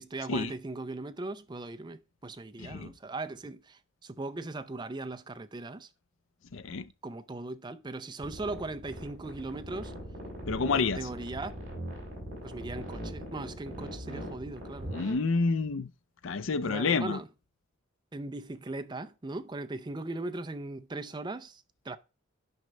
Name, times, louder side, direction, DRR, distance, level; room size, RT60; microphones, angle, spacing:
voice 1, 0.0-5.9 7.0-9.9 10.7-11.5 12.4-14.9 16.6-17.3 18.1-22.0, right 2 dB, 20° right, 0.5 m, -39 dB
voice 2, 2.6-2.9 6.5-6.9 10.5-11.1 14.9-15.9 16.2-17.2, left 4 dB, 65° left, 0.5 m, -29 dB
sound 1, 8.2-15.1, equal, 40° right, 4.0 m, -40 dB
9.5 x 5.2 x 3.2 m
head